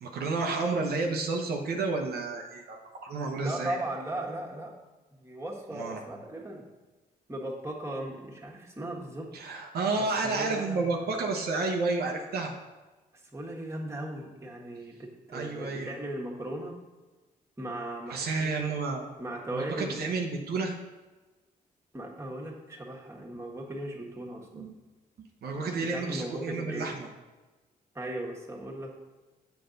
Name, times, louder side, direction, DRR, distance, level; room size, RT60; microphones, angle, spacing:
voice 1, 0.0-3.8 5.7-6.0 9.3-12.5 15.3-16.0 18.1-19.0 19.5-20.7 24.5-24.7 25.2-27.1, right 3 dB, 80° right, 1 dB, 0.8 m, -31 dB
voice 2, 3.4-4.7 5.2-6.6 7.3-9.3 10.0-10.9 13.3-16.8 17.6-18.7 19.2-20.0 21.9-24.7 25.8-26.9 27.9-28.9, right 1 dB, 15° right, -2 dB, 1.5 m, -37 dB
6.9 x 5.3 x 3.9 m, 1.2 s
cardioid pair, 70°, 16 cm